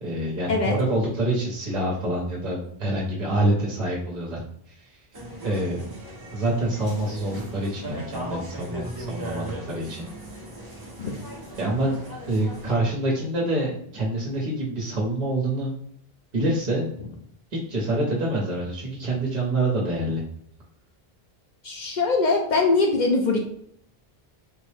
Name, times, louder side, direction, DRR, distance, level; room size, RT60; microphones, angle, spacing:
voice 1, 0.0-4.4 5.4-5.8 6.3-10.1 11.6-12.0 12.3-15.7 16.3-16.9 17.5-20.2, right 1 dB, 50° right, -4 dB, 0.9 m, -26 dB
sound 1, 5.1-12.8, right 1 dB, 30° right, 0.5 m, -38 dB
voice 2, 21.6-23.4, left 3 dB, 55° left, 2 dB, 0.6 m, -22 dB
3.5 x 2.0 x 3.2 m, 0.65 s
omnidirectional pair, 1.0 m